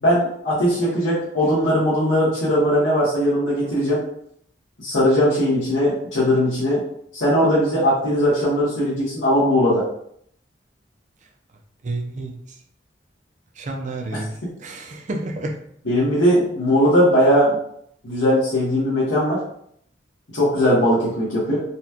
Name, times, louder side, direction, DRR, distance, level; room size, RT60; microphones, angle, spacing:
voice 1, 0.0-4.0 4.8-6.8 7.1-9.8 15.9-17.6 18.0-19.4 20.3-21.6, equal, 90° left, -9 dB, 1.3 m, -19 dB
voice 2, 11.8-12.6 13.6-14.3 14.6-15.6, right 2 dB, 40° right, 2 dB, 0.5 m, -30 dB
4.1 x 2.3 x 2.8 m, 0.68 s
head